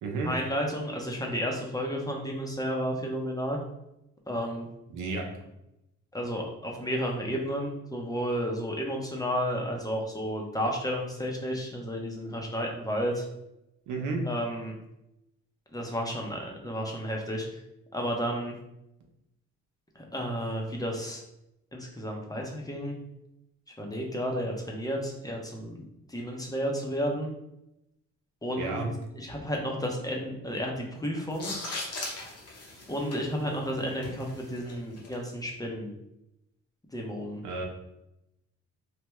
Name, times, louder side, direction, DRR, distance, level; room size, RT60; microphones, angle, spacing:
voice 1, 0.2-3.6 4.3-4.7 6.1-13.2 14.2-14.7 15.7-17.6 17.9-18.5 20.0-21.2 21.7-23.0 23.8-27.3 28.4-31.5 32.9-35.9 36.9-37.4, equal, 10° left, 0 dB, 0.7 m, -32 dB
voice 2, 4.9-5.3 13.9-14.2 28.6-28.9 37.4-37.7, right 3 dB, 90° right, 2 dB, 0.7 m, -31 dB
sound 1, 31.3-35.1, left 2 dB, 55° left, 0.9 m, -39 dB
3.4 x 2.1 x 3.0 m, 0.85 s
cardioid pair, 90°, 30 cm